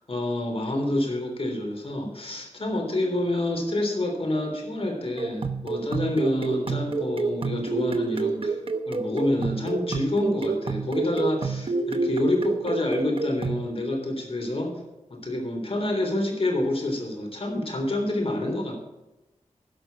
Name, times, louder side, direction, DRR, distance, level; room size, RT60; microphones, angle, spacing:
voice 1, 0.0-8.6 8.9-14.8 15.1-18.8, left 1 dB, 50° left, 2 dB, 3.4 m, -28 dB
sound 1, 5.2-13.7, right 4 dB, 50° right, 0.9 m, -29 dB
11.5 x 6.5 x 7.3 m, 0.97 s
wide cardioid pair, 70°, 12 cm